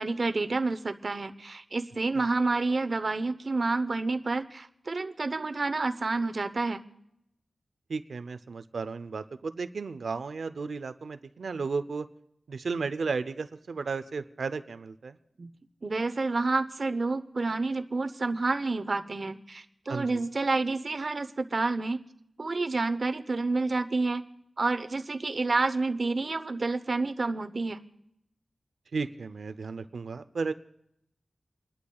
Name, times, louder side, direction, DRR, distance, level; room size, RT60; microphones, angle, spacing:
voice 1, 0.0-6.8 15.4-15.5 15.8-22.0 22.4-24.2 24.6-27.8, right 3 dB, 50° right, 9 dB, 0.8 m, -29 dB
voice 2, 7.9-12.1 12.5-15.2 19.9-20.2 28.9-30.5, right 4 dB, 85° right, 12 dB, 0.5 m, -34 dB
29.5 x 11.5 x 2.3 m, 0.76 s
wide cardioid pair, 95°, 0 cm